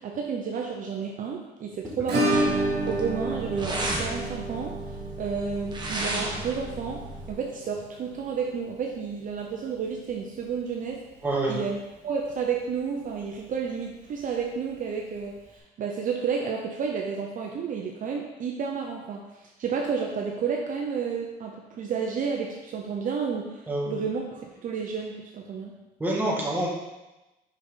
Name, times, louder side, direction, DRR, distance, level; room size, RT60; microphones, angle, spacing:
voice 1, 0.0-2.5 2.9-4.8 5.2-11.0 11.5-11.8 12.0-25.7, right 6 dB, 50° right, 0 dB, 0.8 m, -31 dB
Acoustic guitar / Strum, 2.1-10.7 10.9-11.0 11.3-11.4 11.8-11.9 13.9-14.0 15.2-15.3, right 1 dB, 75° right, 2.6 m, -31 dB
sound 1, 2.3-7.3, right 1 dB, 25° right, 1.3 m, -34 dB
voice 2, 11.2-11.6 23.7-24.0 26.0-26.7, right 1 dB, 10° right, -4 dB, 2.0 m, -26 dB
6.3 x 5.6 x 3.9 m, 1.0 s
cardioid pair, 110°, 17 cm